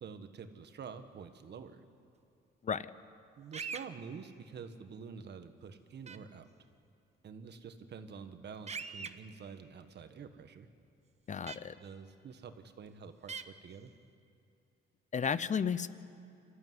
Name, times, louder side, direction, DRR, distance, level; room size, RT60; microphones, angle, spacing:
voice 1, 0.0-1.8 3.4-6.5 7.2-10.7 11.8-13.9, right 6 dB, 60° right, 8 dB, 1.6 m, -48 dB
sound 1, 3.5-3.9 6.1-6.2 8.7-9.1 11.5-11.6 13.3-13.4, right 5 dB, 35° right, 1.1 m, -40 dB
voice 2, 11.3-11.8 15.1-15.9, left 6 dB, 40° left, 16 dB, 0.8 m, -33 dB
26.0 x 14.0 x 9.6 m, 2.5 s
cardioid pair, 90°, 20 cm